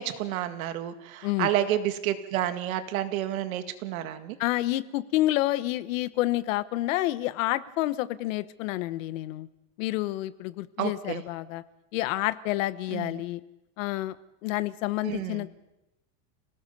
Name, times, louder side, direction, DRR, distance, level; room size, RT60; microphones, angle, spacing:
voice 1, 0.0-4.4 10.8-11.2 12.9-13.2 15.0-15.4, right 12 dB, 70° right, 8 dB, 2.1 m, -30 dB
voice 2, 4.4-9.5 9.8-11.6 11.9-13.4 13.8-14.2 14.4-15.5, left 16 dB, 65° left, 15 dB, 1.1 m, -29 dB
27.5 x 18.0 x 5.4 m, 0.92 s
supercardioid pair, 160°, 43 cm